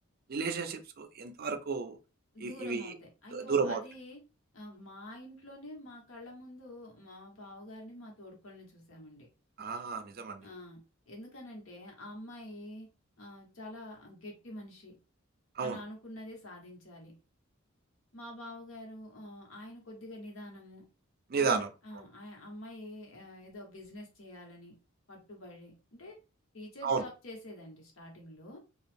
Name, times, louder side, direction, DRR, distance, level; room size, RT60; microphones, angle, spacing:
voice 1, 0.3-2.0 2.4-2.9 3.3-3.8 9.6-10.5 15.6-15.8 21.3-21.7 26.8-27.0, right 5 dB, 45° right, 0.4 m, -32 dB
voice 2, 2.3-4.2 4.5-9.3 10.4-12.9 13.2-14.9 15.6-17.1 18.1-20.8 21.4-24.8 25.1-26.2 26.5-28.6, left 1 dB, 70° left, 1.2 m, -47 dB
2.9 x 2.4 x 3.3 m
head